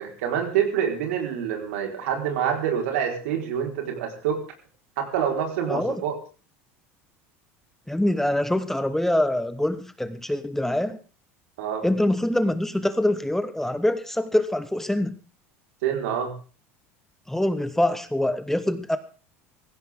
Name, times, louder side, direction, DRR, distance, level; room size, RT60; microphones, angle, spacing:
voice 1, 0.0-4.4 5.0-6.2 11.6-11.9 15.8-16.3, right 8 dB, 80° right, 2 dB, 4.7 m, -26 dB
voice 2, 5.7-6.0 7.9-11.0 11.8-15.2 17.3-19.0, left 1 dB, 5° left, 11 dB, 1.2 m, -24 dB
17.0 x 15.5 x 3.8 m, 0.37 s
supercardioid pair, 100°, 7 cm